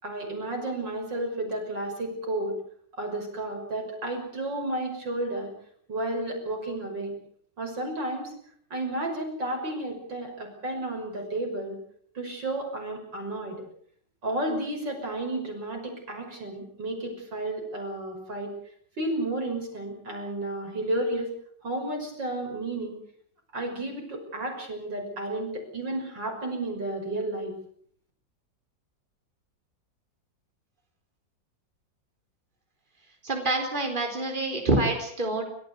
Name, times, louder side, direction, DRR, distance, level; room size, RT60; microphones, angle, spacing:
voice 1, 0.0-2.5 2.9-5.5 5.9-7.1 7.6-8.3 8.7-11.8 12.1-13.6 14.2-18.5 19.0-21.3 21.6-23.0 23.5-27.5, right 1 dB, 80° right, 2 dB, 6.7 m, -32 dB
voice 2, 33.2-35.4, right 2 dB, 25° right, 3 dB, 4.3 m, -26 dB
29.5 x 14.0 x 8.2 m, 0.62 s
omnidirectional pair, 2.0 m